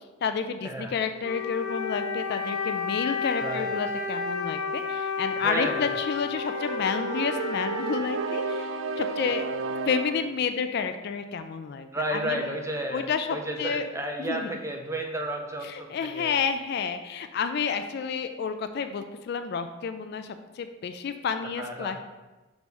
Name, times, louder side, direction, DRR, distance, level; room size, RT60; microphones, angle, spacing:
voice 1, 0.2-9.4 9.9-12.5 12.9-13.9 14.2-14.5 15.6-22.0, left 6 dB, 55° left, 9 dB, 0.3 m, -30 dB
Wind instrument woodwind instrument, 1.2-8.8, left 5 dB, 85° left, 1.0 m, -32 dB
voice 2, 3.4-3.8 5.4-6.1 11.9-16.4 21.5-22.0, right 1 dB, 15° right, 2 dB, 0.6 m, -32 dB
sound 1, 6.3-10.4, right 5 dB, 65° right, 0.3 m, -32 dB
6.1 x 3.2 x 5.3 m, 1.2 s
head